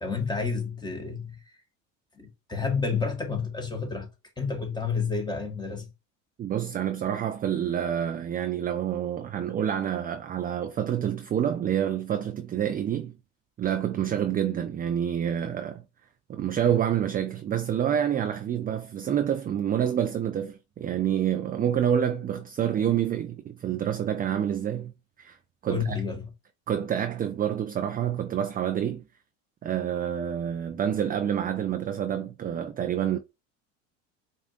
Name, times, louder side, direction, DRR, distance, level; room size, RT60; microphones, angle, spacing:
voice 1, 0.0-1.6 2.1-4.1 4.4-5.9 25.7-26.3, left 5 dB, 10° left, 1.4 m, -30 dB
voice 2, 6.4-13.2 13.6-15.8 16.3-24.9 25.2-25.4 25.6-26.0 26.7-29.0 29.6-33.2, right 9 dB, 25° right, 0.4 m, -27 dB
4.9 x 2.5 x 2.5 m
hypercardioid pair, 80°, 39 cm